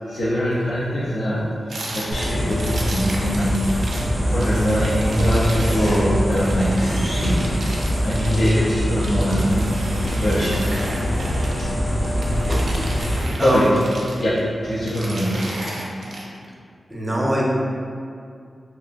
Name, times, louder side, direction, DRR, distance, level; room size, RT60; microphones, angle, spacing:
voice 1, 0.0-3.8 4.3-7.5 8.0-11.0 11.6-11.7 12.3-12.4 13.4-13.8 14.2-14.3 14.6-15.6, equal, 80° left, -10 dB, 0.5 m, -23 dB
sound 1, 1.7-4.1 4.4-11.7 12.0-14.4 14.7-16.2, right 1 dB, 80° right, 0.4 m, -34 dB
sound 2, 2.1-13.2, equal, 25° left, 0.8 m, -23 dB
voice 2, 13.4-13.7 16.9-17.5, equal, 10° right, -4 dB, 0.5 m, -22 dB
2.8 x 2.4 x 2.5 m, 2.3 s
wide cardioid pair, 105°, 0 cm